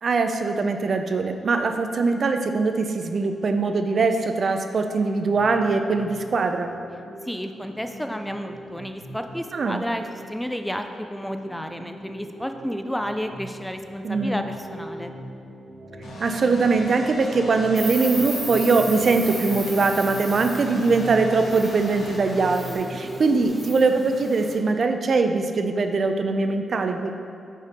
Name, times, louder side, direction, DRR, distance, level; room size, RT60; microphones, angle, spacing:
voice 1, 0.0-6.7 9.5-9.8 14.0-14.4 16.2-27.1, right 3 dB, 50° right, 6 dB, 0.5 m, -22 dB
sound 1, 5.3-23.5, right 1 dB, 90° right, 1.5 m, -40 dB
voice 2, 7.3-15.1, equal, 5° left, 6 dB, 0.4 m, -31 dB
sound 2, 16.0-22.8, left 1 dB, 70° left, 1.2 m, -39 dB
Insect, 17.8-24.5, right 1 dB, 10° right, 1.2 m, -36 dB
5.4 x 5.1 x 5.2 m, 2.5 s
cardioid pair, 90°, 0 cm